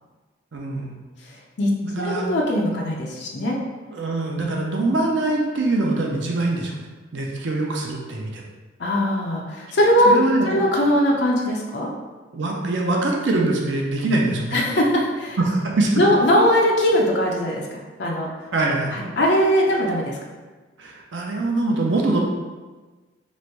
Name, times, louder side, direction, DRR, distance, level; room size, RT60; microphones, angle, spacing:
voice 1, 0.5-1.0 1.8-2.3 3.9-6.8 7.1-8.4 10.0-10.6 12.3-14.6 15.4-15.9 18.5-19.0 20.8-22.2, right 2 dB, 70° right, -1 dB, 0.6 m, -23 dB
voice 2, 1.6-3.6 4.3-4.5 8.8-10.2 10.4-11.9 14.5-15.4 16.0-17.7 18.0-18.3 18.9-20.2, equal, 60° left, -2 dB, 0.6 m, -20 dB
3.1 x 2.5 x 4.4 m, 1.3 s
head